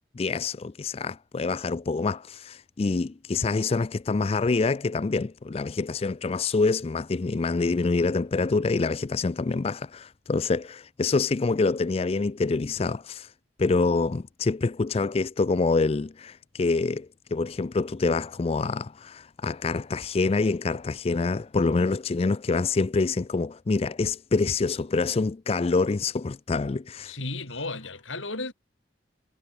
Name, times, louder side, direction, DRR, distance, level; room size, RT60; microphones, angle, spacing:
voice 1, 0.2-13.3 13.6-27.2, left 3 dB, 30° left, 0.4 m, -26 dB
voice 2, 27.1-28.5, left 2 dB, 80° left, 7.7 m, -34 dB
head